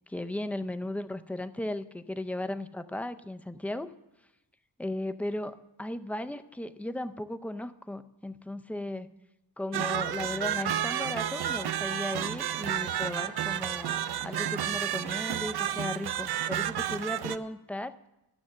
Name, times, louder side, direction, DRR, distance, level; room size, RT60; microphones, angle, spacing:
voice 1, 0.1-3.9 4.8-9.1 9.6-17.9, left 1 dB, 5° left, 10 dB, 0.4 m, -36 dB
sound 1, 9.7-17.4, right 11 dB, 65° right, 0.5 m, -31 dB
12.5 x 6.3 x 7.4 m, 0.95 s
wide cardioid pair, 90°, 42 cm